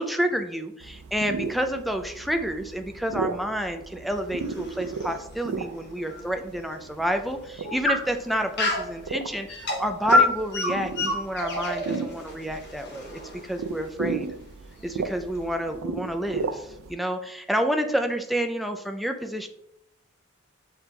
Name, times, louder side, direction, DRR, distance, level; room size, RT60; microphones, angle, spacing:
voice 1, 0.0-14.3 14.8-19.5, equal, ahead, 5 dB, 0.3 m, -29 dB
sound 1, 0.8-16.9, right 5 dB, 70° right, 0.4 m, -35 dB
sound 2, 4.2-6.3 6.7-6.8 7.4-9.0 9.5-13.8, left 2 dB, 55° left, 0.9 m, -27 dB
6.8 x 2.9 x 2.2 m, 0.77 s
head